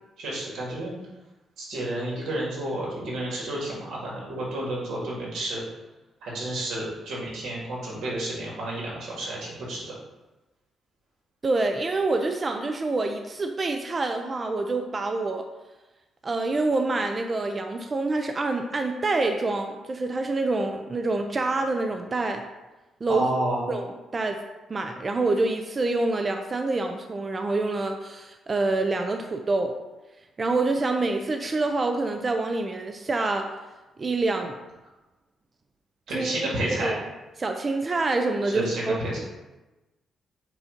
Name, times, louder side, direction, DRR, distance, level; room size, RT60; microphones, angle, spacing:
voice 1, 0.2-0.9 1.6-5.6 6.2-9.9 23.1-23.6 36.1-37.0 38.5-39.2, right 1 dB, 90° right, -4 dB, 2.0 m, -30 dB
voice 2, 11.4-15.5 16.2-22.4 23.0-23.3 23.7-23.9 24.1-24.4 24.7-29.8 30.4-33.5 34.0-34.6 36.1-36.5 36.8-37.0 37.4-39.0, right 3 dB, 30° right, 5 dB, 0.4 m, -26 dB
7.4 x 2.6 x 5.0 m, 1.1 s
cardioid pair, 135°, 0 cm